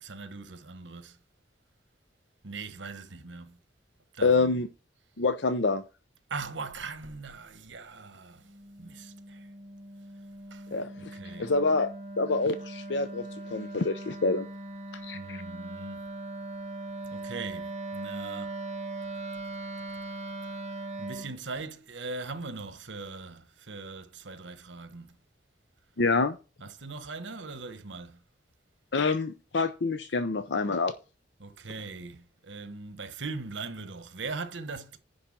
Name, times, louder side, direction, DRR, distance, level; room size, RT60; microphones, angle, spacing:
voice 1, 0.0-1.2 2.4-3.6 4.1-4.6 6.3-8.5 8.8-9.5 10.5-10.7 11.0-11.5 15.1-16.0 17.1-18.6 21.0-25.2 26.6-28.2 31.4-35.0, right 4 dB, 80° right, 1.2 m, -40 dB
voice 2, 4.2-4.7 5.2-5.8 10.7-11.1 11.4-11.9 12.2-14.5 15.0-15.4 26.0-26.4 28.9-30.9, left 3 dB, 70° left, 0.7 m, -27 dB
Wind instrument woodwind instrument, 8.4-21.3, right 2 dB, 35° right, 1.4 m, -40 dB
10.5 x 4.1 x 7.4 m
head